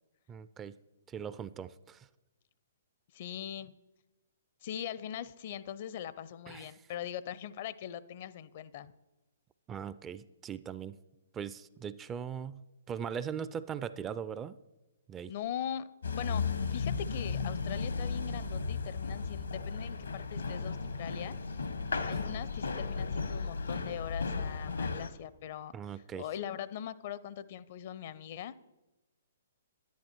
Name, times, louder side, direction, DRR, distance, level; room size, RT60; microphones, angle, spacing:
voice 1, 0.3-0.8 1.1-2.1 6.5-6.8 9.7-11.0 11.3-12.6 12.9-14.6 15.1-15.3 25.7-26.2, right 7 dB, 20° right, 15 dB, 0.3 m, -40 dB
voice 2, 3.1-3.7 4.6-8.9 15.3-15.9 16.1-21.4 22.0-25.7 26.2-28.6, left 10 dB, 45° left, 17 dB, 0.5 m, -41 dB
sound 1, 16.0-25.1, left 4 dB, 75° left, 1.0 m, -35 dB
10.5 x 10.5 x 4.4 m, 1.1 s
figure-of-eight pair, 125°, 0 cm